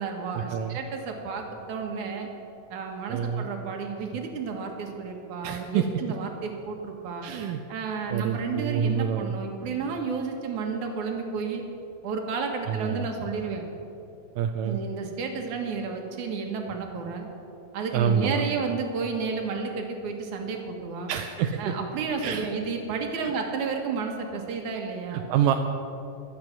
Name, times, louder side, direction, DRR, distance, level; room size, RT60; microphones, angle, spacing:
voice 1, 0.0-2.3 2.7-7.3 7.7-11.6 12.0-13.6 14.6-17.3 17.7-21.1 21.6-25.2, right 5 dB, 65° right, 2 dB, 2.8 m, -31 dB
voice 2, 3.1-3.5 5.4-5.8 7.2-7.6 8.1-9.3 12.7-13.1 14.4-14.8 17.9-18.4 21.1-21.7 22.2-22.5 25.1-25.6, right 8 dB, 80° right, 4 dB, 2.1 m, -27 dB
23.0 x 8.7 x 6.0 m, 2.8 s
omnidirectional pair, 4.1 m